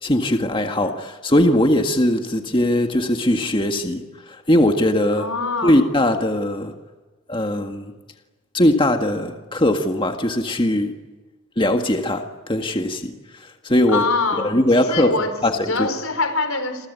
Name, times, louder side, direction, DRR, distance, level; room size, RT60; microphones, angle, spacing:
voice 1, 0.0-5.3 5.6-6.7 7.3-7.9 8.5-10.9 11.6-13.1 13.4-14.0 14.3-15.1 15.4-15.9, left 1 dB, 25° left, 5 dB, 1.8 m, -20 dB
voice 2, 5.2-5.8 13.9-16.9, left 3 dB, 90° left, 9 dB, 4.5 m, -24 dB
29.0 x 23.5 x 8.4 m, 1.2 s
head